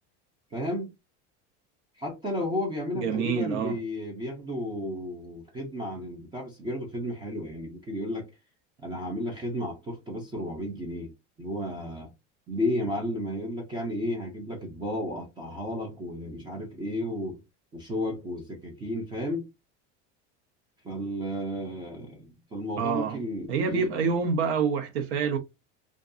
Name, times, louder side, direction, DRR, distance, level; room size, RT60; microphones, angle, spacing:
voice 1, 0.5-0.9 2.0-8.3 8.8-11.1 11.4-12.1 12.5-17.4 17.7-19.5 20.8-23.9, left 1 dB, 15° right, 0.4 m, -33 dB
voice 2, 2.9-3.8 22.8-23.2 23.5-25.4, right 6 dB, 80° right, 0.8 m, -27 dB
2.5 x 2.3 x 2.4 m
cardioid pair, 160°, 34 cm